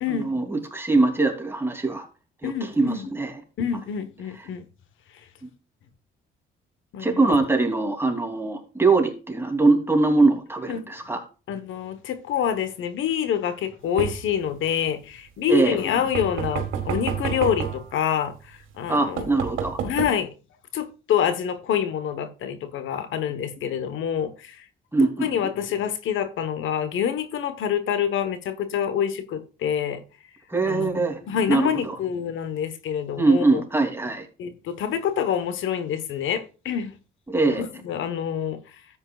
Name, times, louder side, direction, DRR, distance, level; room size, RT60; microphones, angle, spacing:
voice 1, 0.1-2.1 2.4-3.4 7.0-11.2 15.5-15.8 18.9-19.8 24.9-25.3 30.5-31.2 31.5-32.0 33.2-34.3 37.3-37.6, right 3 dB, 10° right, 2.9 m, -22 dB
voice 2, 2.4-3.1 3.6-4.7 6.9-7.4 10.7-10.9 11.5-19.4 19.8-20.3 20.7-24.6 25.0-30.0 30.7-33.6 34.4-36.9 37.5-38.8, left 8 dB, 80° left, 1.2 m, -27 dB
sound 1, 14.0-14.5 16.1-17.9 18.7-18.8 19.2-20.1, right 8 dB, 85° right, 1.8 m, -29 dB
13.0 x 8.6 x 2.4 m
cardioid pair, 90°, 20 cm